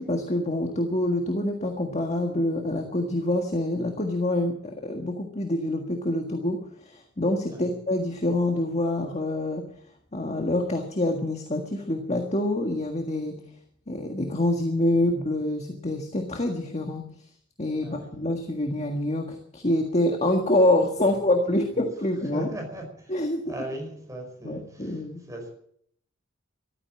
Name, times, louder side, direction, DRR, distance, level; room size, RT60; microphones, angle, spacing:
voice 1, 0.0-9.6 10.1-13.4 13.9-17.0 17.6-22.5 23.1-23.4 24.4-25.2, left 1 dB, 35° left, 1.7 m, -26 dB
voice 2, 22.3-23.1 23.5-25.5, right 1 dB, 15° right, 5.1 m, -38 dB
14.5 x 13.0 x 7.6 m
head